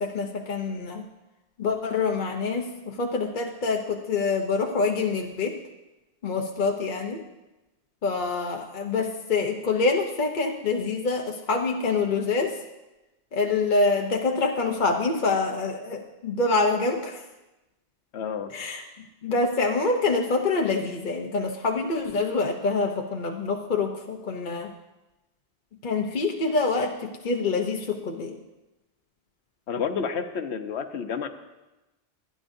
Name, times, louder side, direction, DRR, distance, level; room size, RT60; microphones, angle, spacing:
voice 1, 0.0-1.1 1.6-5.6 6.2-7.2 8.0-12.6 13.3-17.2 18.5-18.8 19.2-24.7 25.8-28.4, left 3 dB, 50° left, 2 dB, 0.9 m, -26 dB
voice 2, 18.1-18.5 29.7-31.3, left 6 dB, 70° left, 7 dB, 1.1 m, -30 dB
24.0 x 10.0 x 2.7 m, 1.0 s
omnidirectional pair, 1.2 m